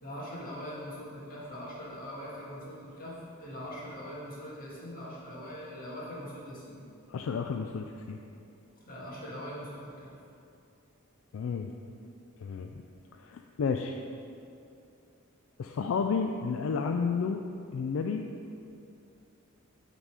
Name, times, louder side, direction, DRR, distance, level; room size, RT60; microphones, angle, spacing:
voice 1, 0.0-6.8 8.8-10.1, equal, 40° left, -6 dB, 1.8 m, -42 dB
voice 2, 7.1-8.2 11.3-11.7 12.4-12.7 13.2-14.0 15.6-17.4 17.7-18.3, left 5 dB, 70° left, 4 dB, 0.3 m, -31 dB
8.9 x 4.1 x 4.7 m, 2.6 s
head